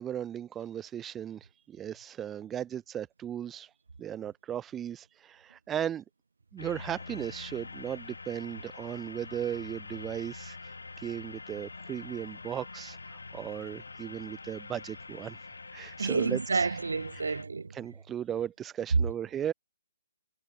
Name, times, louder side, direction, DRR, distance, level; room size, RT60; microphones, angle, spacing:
voice 1, 0.0-3.7 4.0-6.0 6.5-15.4 15.7-16.7 17.7-19.5, right 10 dB, 15° right, 0.9 m, -36 dB
sound 1, 6.6-17.4, left 3 dB, 80° left, 5.5 m, -45 dB
voice 2, 16.0-17.7, right 4 dB, 75° right, 0.5 m, -29 dB
figure-of-eight pair, 135°, 0 cm